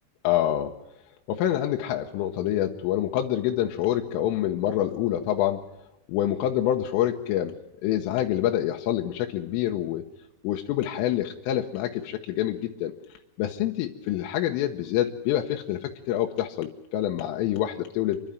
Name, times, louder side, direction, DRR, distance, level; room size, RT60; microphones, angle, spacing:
voice 1, 0.2-0.7 1.3-5.7 6.1-7.5 7.8-10.0 10.4-12.9 13.4-18.2, left 12 dB, 90° left, 2 dB, 3.6 m, -26 dB
28.0 x 11.5 x 9.0 m, 0.95 s
omnidirectional pair, 5.7 m